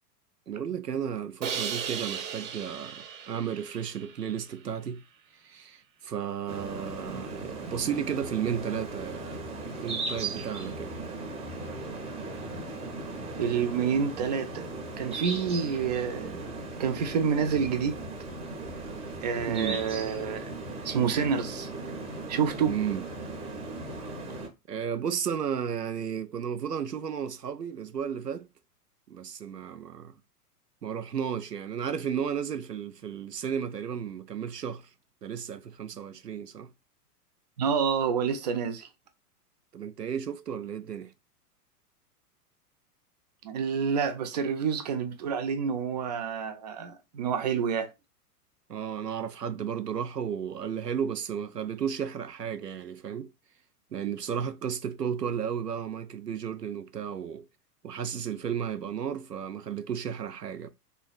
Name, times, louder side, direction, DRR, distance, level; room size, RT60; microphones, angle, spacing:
voice 1, 0.5-5.0 5.4-11.0 19.5-19.8 22.7-23.0 24.7-28.5 29.1-30.1 30.8-34.9 35.2-36.7 39.7-41.1 48.7-53.3 53.9-57.5 57.8-60.7, right 8 dB, 90° right, 0.6 m, -33 dB
Crash cymbal, 1.4-4.5, right 7 dB, 55° right, 0.9 m, -36 dB
sound 1, 6.5-24.5, right 2 dB, 15° right, 0.8 m, -37 dB
voice 2, 13.4-14.7 15.0-16.5 16.8-18.0 19.2-21.7 22.3-22.7 37.6-38.9 43.4-47.9, right 6 dB, 30° right, 0.4 m, -28 dB
3.9 x 3.2 x 2.3 m
figure-of-eight pair, 100°, 47 cm